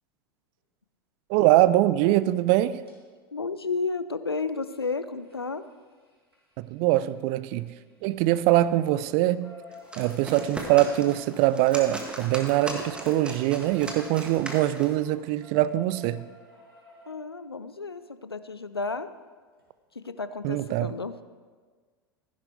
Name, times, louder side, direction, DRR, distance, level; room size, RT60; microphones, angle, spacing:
voice 1, 1.3-2.8 6.6-7.7 8.0-9.5 10.0-16.3 20.4-21.0, right 15 dB, 45° right, 16 dB, 0.4 m, -23 dB
sound 1, 2.9-3.0 4.6-8.1 8.4-17.1 18.8-18.9 19.2-19.3 19.6-19.7, left 2 dB, 80° right, 2.6 m, -51 dB
voice 2, 3.3-5.6 17.1-19.1 19.9-21.1, left 4 dB, 85° left, 13 dB, 0.5 m, -32 dB
sound 2, 9.7-15.0, right 1 dB, 10° right, 1.6 m, -38 dB
15.0 x 10.5 x 3.4 m, 1.5 s
figure-of-eight pair, 85°, 13 cm